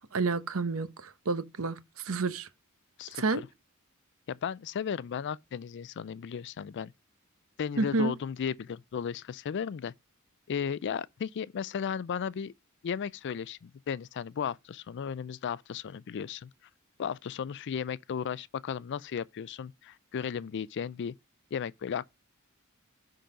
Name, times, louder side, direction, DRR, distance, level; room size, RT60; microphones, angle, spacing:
voice 1, 0.1-2.5 3.1-3.4 7.8-8.1, right 3 dB, 70° right, 0.9 m, -30 dB
voice 2, 3.0-3.5 4.3-6.9 7.6-9.9 10.5-12.5 12.8-16.5 17.0-21.1 21.5-22.0, left 7 dB, 55° left, 0.4 m, -35 dB
10.0 x 3.9 x 5.1 m
head